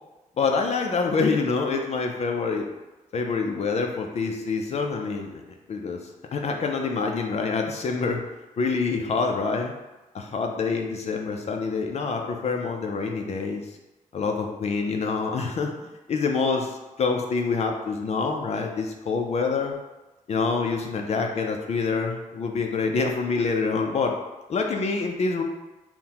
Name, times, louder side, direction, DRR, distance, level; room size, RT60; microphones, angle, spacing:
voice 1, 0.4-2.6 3.1-5.4 5.7-6.0 6.3-8.2 8.6-9.7 10.1-13.6 14.1-15.7 16.1-16.7 17.0-19.8 20.3-24.1 24.5-25.4, left 4 dB, 50° left, 3 dB, 0.4 m, -26 dB
5.6 x 2.1 x 2.9 m, 1.1 s
cardioid pair, 110°, 14 cm